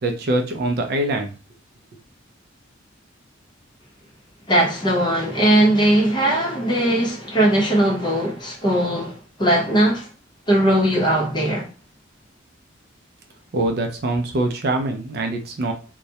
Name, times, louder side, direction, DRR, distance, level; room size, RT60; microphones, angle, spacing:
voice 1, 0.0-1.3 13.5-15.7, right 2 dB, 55° right, 0.4 m, -23 dB
voice 2, 4.5-10.1 10.5-11.7, right 1 dB, 25° left, 0.7 m, -19 dB
2.2 x 2.0 x 2.7 m
head